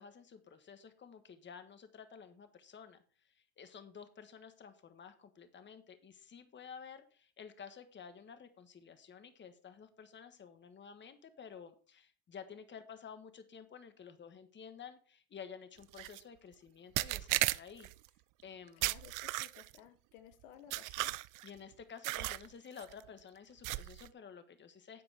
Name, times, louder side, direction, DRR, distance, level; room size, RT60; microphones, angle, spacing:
voice 1, 0.0-17.9 18.4-18.8 21.4-25.0, left 7 dB, 30° left, 9 dB, 1.4 m, -52 dB
sound 1, 15.9-16.2 17.0-17.9 18.8-19.8 20.7-21.5 22.0-22.5 22.8-23.0 23.6-24.1, right 19 dB, 60° right, 0.5 m, -35 dB
voice 2, 18.8-21.1, left 10 dB, 85° left, 10 dB, 1.2 m, -57 dB
10.5 x 7.6 x 3.5 m, 0.41 s
supercardioid pair, 105°, 36 cm